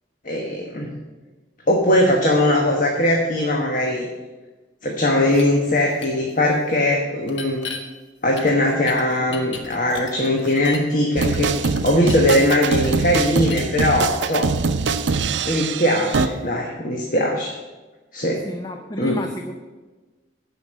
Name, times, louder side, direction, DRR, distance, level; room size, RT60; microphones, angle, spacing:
voice 1, 0.2-1.0 1.7-4.1 4.8-7.6 8.2-11.5 11.8-14.5 15.4-17.5 18.1-18.4 19.0-19.2, left 1 dB, 45° left, 0 dB, 1.2 m, -20 dB
sound 1, 5.3-5.4 6.0-6.1 7.3-7.8 8.4-10.9 11.2-13.2 13.5-13.7, left 4 dB, 75° left, 1.3 m, -34 dB
sound 2, 11.2-16.3, right 4 dB, 70° right, 0.5 m, -23 dB
voice 2, 18.4-19.5, equal, 20° left, 4 dB, 0.6 m, -31 dB
11.5 x 5.2 x 7.5 m, 1.2 s
head